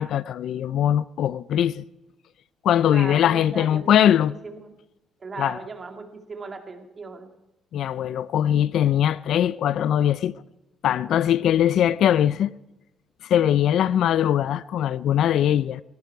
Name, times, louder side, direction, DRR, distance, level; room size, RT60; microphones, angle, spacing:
voice 1, 0.0-1.8 2.6-4.3 5.4-5.6 7.7-10.3 10.8-12.5 13.2-15.8, left 10 dB, 65° left, 0.4 m, -21 dB
voice 2, 2.8-4.2 4.4-4.7 5.2-7.3, right 4 dB, 30° right, 2.3 m, -37 dB
17.5 x 17.0 x 4.7 m
cardioid pair, 125°, 0 cm